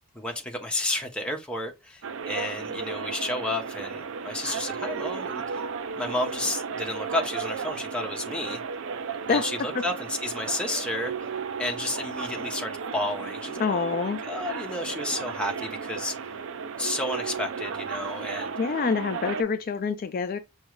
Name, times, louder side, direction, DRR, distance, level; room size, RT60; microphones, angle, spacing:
voice 1, 0.1-5.6 5.9-8.6 9.3-11.1 11.6-16.1 16.8-18.5, left 1 dB, 5° left, 0.7 m, -31 dB
sound 1, 2.0-19.4, right 5 dB, 60° right, 0.4 m, -34 dB
voice 2, 13.6-14.2 18.6-20.4, left 5 dB, 40° left, 0.3 m, -26 dB
6.1 x 2.4 x 3.0 m
head